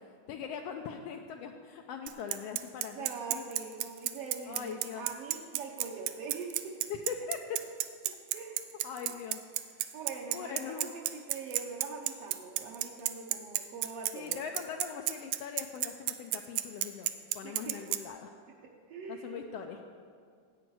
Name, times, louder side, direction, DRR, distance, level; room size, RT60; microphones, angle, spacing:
voice 1, 0.3-3.4 4.5-5.1 6.9-7.6 8.8-9.4 9.7-9.8 10.3-10.9 14.1-17.1 17.3-18.3 19.1-19.8, left 7 dB, 85° left, 3 dB, 1.4 m, -41 dB
Bicycle, 2.1-18.0, right 15 dB, 90° right, 2.0 m, -32 dB
voice 2, 2.9-6.8 8.1-8.6 9.9-14.4 17.4-17.8 18.9-19.5, right 4 dB, 65° right, -1 dB, 1.7 m, -43 dB
15.5 x 8.7 x 4.7 m, 2.2 s
omnidirectional pair, 3.4 m